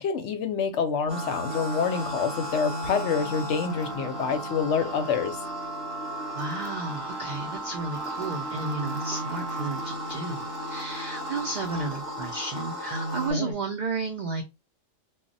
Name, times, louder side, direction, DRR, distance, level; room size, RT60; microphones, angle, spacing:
voice 1, 0.0-5.4 13.3-13.5, left 6 dB, 70° left, 0.8 m, -27 dB
sound 1, 1.0-13.5, right 2 dB, 70° right, 0.8 m, -40 dB
sound 2, 1.1-13.3, equal, 20° left, 0.8 m, -35 dB
voice 2, 6.3-14.4, right 3 dB, 90° right, 0.4 m, -33 dB
2.2 x 2.1 x 3.8 m
omnidirectional pair, 1.4 m